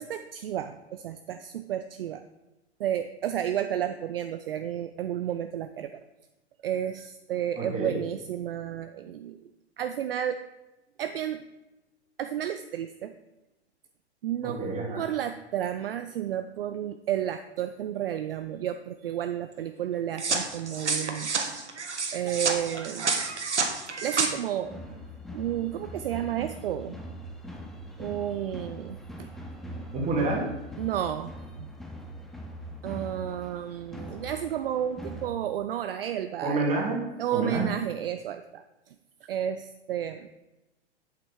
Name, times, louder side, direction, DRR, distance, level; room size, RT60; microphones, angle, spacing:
voice 1, 0.0-2.2 2.8-6.0 6.6-9.4 9.8-10.4 11.0-11.4 12.2-13.1 14.2-14.6 15.0-21.3 22.1-23.3 24.0-24.8 25.3-27.0 28.0-29.3 30.8-31.3 31.6-31.7 32.8-36.7 37.2-38.6 39.2-40.3, right 10 dB, 55° right, 9 dB, 0.6 m, -32 dB
voice 2, 7.6-8.0 14.4-15.0 29.6-30.5 36.4-37.0 37.3-37.7, right 3 dB, 20° right, -2 dB, 2.7 m, -28 dB
sound 1, 20.2-24.3, right 4 dB, 80° right, 1.4 m, -29 dB
sound 2, 24.6-35.3, equal, ahead, 0.4 m, -42 dB
8.3 x 7.5 x 4.8 m, 0.99 s
figure-of-eight pair, 110°, 34 cm